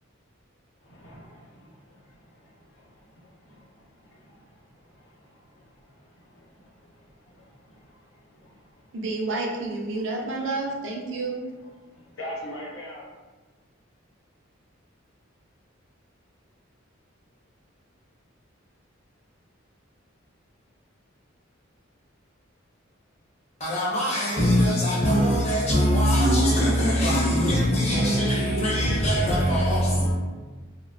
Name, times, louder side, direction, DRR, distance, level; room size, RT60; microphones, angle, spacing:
voice 1, 0.8-9.0 11.9-13.1, equal, 80° left, -4 dB, 0.7 m, -45 dB
voice 2, 8.9-11.4, right 2 dB, 60° right, -1 dB, 0.4 m, -29 dB
voice 3, 23.6-30.1, equal, 30° left, -6 dB, 0.6 m, -22 dB
2.4 x 2.1 x 2.4 m, 1.3 s
head